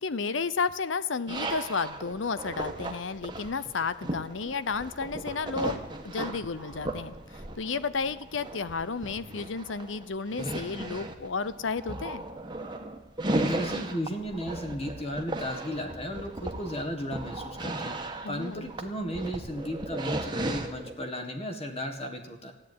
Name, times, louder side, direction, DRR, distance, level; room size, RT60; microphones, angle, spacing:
voice 1, 0.0-12.2 18.2-18.7, left 4 dB, 80° left, 15 dB, 0.7 m, -32 dB
sound 1, 1.3-20.9, right 2 dB, 25° right, 1.3 m, -36 dB
voice 2, 13.3-18.0 18.3-22.5, equal, 30° left, 5 dB, 1.8 m, -35 dB
14.0 x 9.8 x 9.4 m, 1.0 s
head